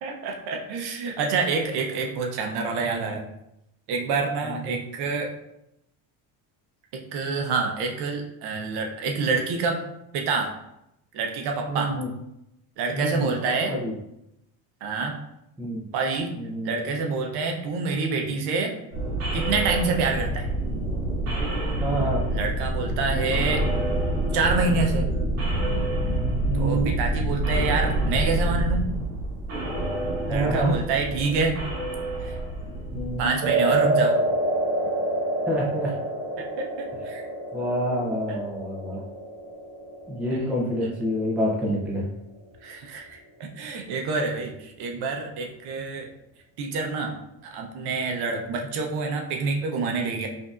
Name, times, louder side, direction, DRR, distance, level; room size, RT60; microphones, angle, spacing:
voice 1, 0.0-3.2 3.9-5.3 6.9-9.8 10.1-10.5 11.1-12.0 12.8-13.7 14.8-15.2 15.9-16.3 16.6-18.7 19.3-20.5 22.3-23.6 24.3-25.1 26.5-28.9 30.3-31.6 32.2-32.4 33.2-34.2 36.4-37.2 38.3-38.4 40.3-40.4 42.6-46.1 46.6-47.2 47.5-50.3, right 4 dB, 65° right, 3 dB, 0.7 m, -27 dB
voice 2, 4.4-4.8 11.7-12.1 12.9-13.3 13.7-13.9 15.6-15.9 16.4-16.9 21.8-22.3 26.5-27.0 30.3-30.8 32.9-33.3 35.5-35.9 37.5-39.0 40.1-42.1, right 1 dB, 5° right, -4 dB, 0.4 m, -27 dB
sound 1, 18.9-33.3, right 1 dB, 40° right, 0.9 m, -27 dB
sound 2, 33.4-41.8, right 2 dB, 90° right, 1.1 m, -27 dB
5.1 x 2.6 x 2.4 m, 0.84 s
cardioid pair, 170°, 41 cm